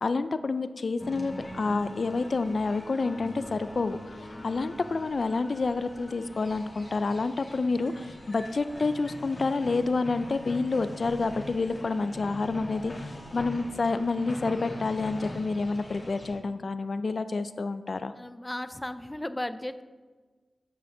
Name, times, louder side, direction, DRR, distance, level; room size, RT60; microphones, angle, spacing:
voice 1, 0.0-18.1, left 3 dB, 65° left, 12 dB, 0.4 m, -29 dB
sound 1, 1.0-16.3, left 1 dB, 40° left, 2.5 m, -42 dB
voice 2, 18.2-19.8, left 1 dB, 20° left, 12 dB, 0.6 m, -35 dB
14.0 x 5.8 x 3.8 m, 1.4 s
cardioid pair, 40°, 0 cm